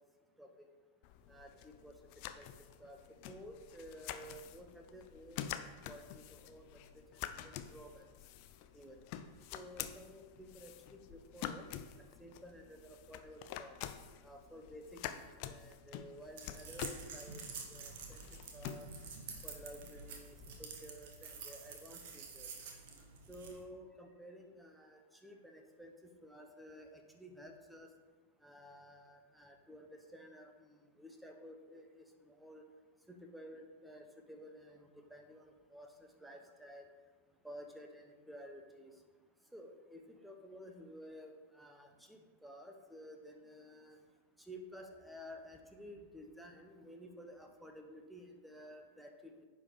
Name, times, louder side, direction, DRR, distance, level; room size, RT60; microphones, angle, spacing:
sound 1, 1.0-20.6, left 10 dB, 45° left, 0.5 m, -48 dB
voice 1, 1.3-1.9 2.4-2.5 2.8-6.8 7.4-8.1 8.7-9.0 9.5-11.7 12.2-13.8 14.2-17.4 17.7-18.2 18.5-18.9 19.4-22.5 23.3-27.9 28.4-32.6 33.1-35.9 36.2-36.9 37.4-38.9 39.5-44.0 44.4-49.4, equal, ahead, 4 dB, 1.1 m, -53 dB
sound 2, 16.4-23.6, right 5 dB, 50° right, 1.4 m, -49 dB
9.8 x 4.5 x 5.0 m, 1.4 s
figure-of-eight pair, 90°, 0 cm